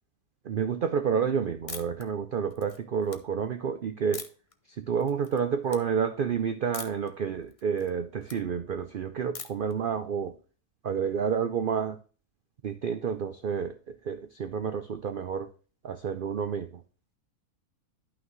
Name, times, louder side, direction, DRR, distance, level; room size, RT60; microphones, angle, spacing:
voice 1, 0.5-4.3 4.8-10.3 10.8-12.0 12.6-15.5 15.8-16.7, right 7 dB, 75° right, 9 dB, 0.4 m, -29 dB
sound 1, 1.7-2.0 2.5-3.2 4.1-4.5 5.0-5.4 5.7-5.8 6.7-7.1 7.5-8.4 9.3-9.7, left 5 dB, 50° left, 0.4 m, -42 dB
11.5 x 5.9 x 3.1 m, 0.38 s
omnidirectional pair, 1.7 m